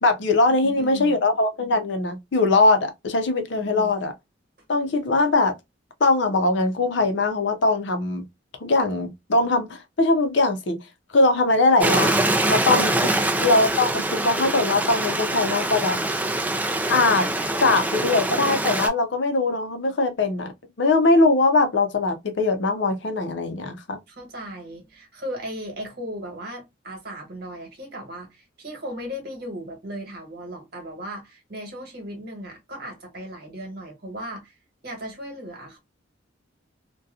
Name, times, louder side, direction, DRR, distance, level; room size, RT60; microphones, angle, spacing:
voice 1, 0.0-4.1 4.7-5.5 6.0-8.2 8.6-10.8 11.1-13.0 13.4-16.0 16.9-17.3 17.6-20.5 20.8-24.0, left 2 dB, 65° left, 0.6 m, -21 dB
voice 2, 0.6-1.2 3.7-3.9 12.9-13.3 24.1-34.5 34.8-35.8, equal, 55° right, 1.3 m, -36 dB
Stream, 11.8-18.9, right 1 dB, 10° right, 0.3 m, -24 dB
2.7 x 2.2 x 2.3 m
head